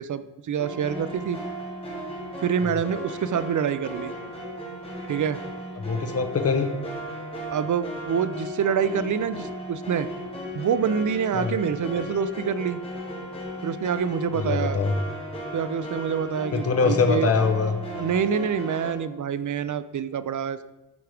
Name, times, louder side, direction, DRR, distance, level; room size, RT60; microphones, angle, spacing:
voice 1, 0.0-1.4 2.4-4.1 5.1-5.4 7.5-10.1 10.5-12.8 13.6-14.8 15.5-17.3 18.0-20.6, right 7 dB, 45° right, 13 dB, 0.5 m, -26 dB
sound 1, 0.6-18.9, equal, 15° left, 2.5 m, -36 dB
voice 2, 5.8-6.7 11.3-11.5 14.3-15.0 16.5-17.8, left 4 dB, 35° left, 6 dB, 0.9 m, -23 dB
13.5 x 4.7 x 5.0 m, 1.1 s
wide cardioid pair, 145°, 42 cm